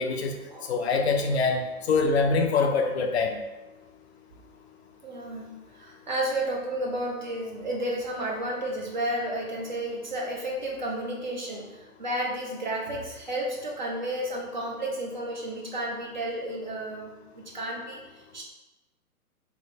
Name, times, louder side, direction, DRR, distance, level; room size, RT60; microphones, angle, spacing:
voice 1, 0.0-0.3 0.7-3.4, left 4 dB, 50° left, 3 dB, 0.4 m, -24 dB
voice 2, 5.0-18.4, right 1 dB, 35° right, -1 dB, 0.4 m, -32 dB
3.3 x 2.2 x 4.0 m, 1.1 s
hypercardioid pair, 130°, 45 cm